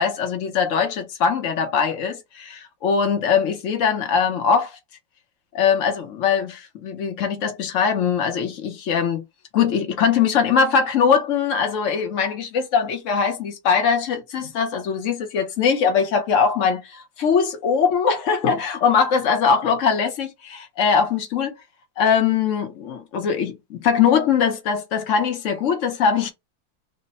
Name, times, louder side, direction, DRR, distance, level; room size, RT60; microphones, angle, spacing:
voice 1, 0.0-4.8 5.5-9.2 9.5-21.6 22.0-26.3, left 6 dB, 60° left, 0.8 m, -21 dB
3.3 x 2.1 x 4.0 m
omnidirectional pair, 2.1 m